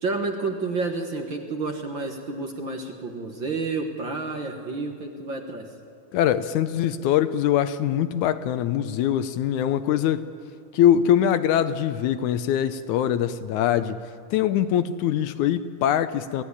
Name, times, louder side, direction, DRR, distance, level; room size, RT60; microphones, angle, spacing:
voice 1, 0.0-5.7, right 3 dB, 45° right, 1.8 m, -30 dB
voice 2, 6.1-10.3 10.7-14.0 14.3-16.4, left 10 dB, 75° left, 2.0 m, -23 dB
27.0 x 16.0 x 9.8 m
omnidirectional pair, 3.7 m